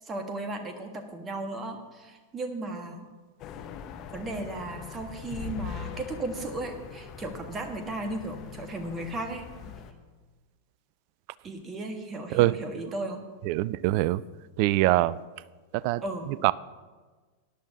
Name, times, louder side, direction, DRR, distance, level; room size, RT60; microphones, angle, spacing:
voice 1, 0.0-3.1 4.1-9.5 11.4-13.2 16.0-16.4, right 2 dB, 20° right, 5 dB, 1.5 m, -35 dB
sound 1, 3.4-9.9, left 8 dB, 35° left, 0.9 m, -42 dB
voice 2, 13.4-14.2 14.6-15.2 15.7-16.5, right 18 dB, 45° right, 20 dB, 0.3 m, -24 dB
17.5 x 11.0 x 2.8 m, 1.4 s
figure-of-eight pair, 90°, 0 cm